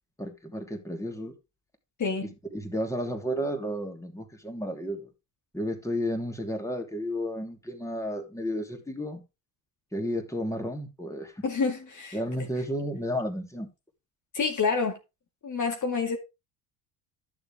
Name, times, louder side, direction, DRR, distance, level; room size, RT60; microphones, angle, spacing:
voice 1, 0.2-1.3 2.2-5.1 5.5-9.2 9.9-11.4 12.1-13.7, equal, 5° left, 3.0 m, -32 dB
voice 2, 2.0-2.3 11.4-12.2 14.3-15.0 15.4-16.2, left 4 dB, 40° left, 2.1 m, -28 dB
11.5 x 7.0 x 3.6 m
supercardioid pair, 70°, 48 cm